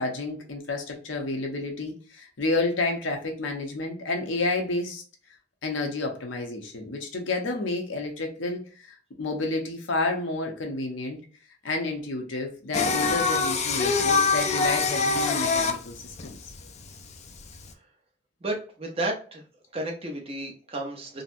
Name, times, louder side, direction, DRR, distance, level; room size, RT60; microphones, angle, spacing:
voice 1, 0.0-5.0 5.6-11.2 11.6-16.4, left 2 dB, 85° left, 2 dB, 0.8 m, -30 dB
Singing, 12.7-17.7, left 4 dB, 35° left, 0.4 m, -25 dB
voice 2, 18.4-19.4 19.7-21.2, right 2 dB, 30° right, 2 dB, 0.7 m, -32 dB
3.9 x 2.1 x 2.5 m, 0.40 s
head